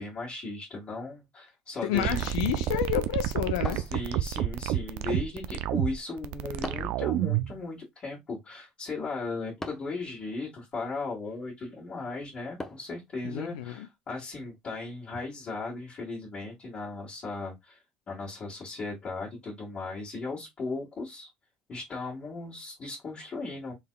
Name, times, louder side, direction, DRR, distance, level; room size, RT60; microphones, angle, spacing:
voice 1, 0.0-2.2 3.7-17.8 18.1-21.3 21.7-23.7, left 3 dB, 45° left, 2.0 m, -37 dB
voice 2, 1.8-3.9 13.2-13.9, left 12 dB, 90° left, 0.5 m, -30 dB
sound 1, 1.9-7.5, right 13 dB, 75° right, 0.4 m, -29 dB
sound 2, 3.6-4.5 6.6-7.1 9.6-10.0 12.6-13.0, left 1 dB, 15° left, 0.9 m, -40 dB
4.0 x 3.5 x 2.3 m
supercardioid pair, 75°, 3 cm